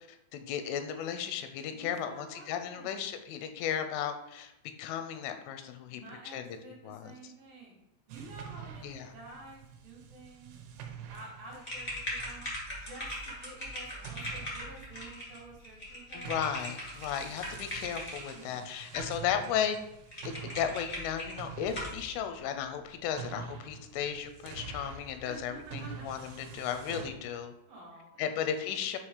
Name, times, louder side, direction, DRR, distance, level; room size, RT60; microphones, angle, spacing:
voice 1, 0.3-4.5 4.8-6.4 6.8-7.1 8.8-9.1 16.1-19.8 20.3-27.5 28.2-29.0, left 9 dB, 85° left, 8 dB, 3.0 m, -35 dB
voice 2, 1.7-3.0 5.9-7.8 8.1-10.6 11.1-12.4 12.7-16.5 18.3-18.6 25.2-26.1 27.7-28.4, right 2 dB, 70° right, -4 dB, 2.2 m, -50 dB
sound 1, 8.1-13.7 14.0-27.1, right 7 dB, 85° right, 3.2 m, -47 dB
sound 2, 11.6-18.3 18.9-19.5 19.7-19.8 20.1-21.3 21.7-22.0, equal, 50° left, 0.7 m, -40 dB
8.1 x 3.0 x 4.9 m, 0.85 s
omnidirectional pair, 5.6 m